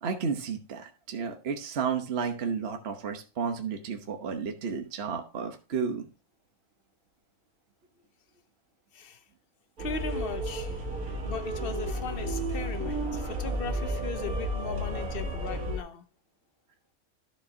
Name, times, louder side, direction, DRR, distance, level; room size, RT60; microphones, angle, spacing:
voice 1, 0.0-6.1, right 6 dB, 50° right, 1.2 m, -32 dB
voice 2, 9.8-10.8 11.2-16.0, left 6 dB, 55° left, 0.7 m, -38 dB
sound 1, 9.8-15.8, right 1 dB, 85° right, 1.9 m, -32 dB
12.0 x 6.8 x 2.7 m
omnidirectional pair, 1.5 m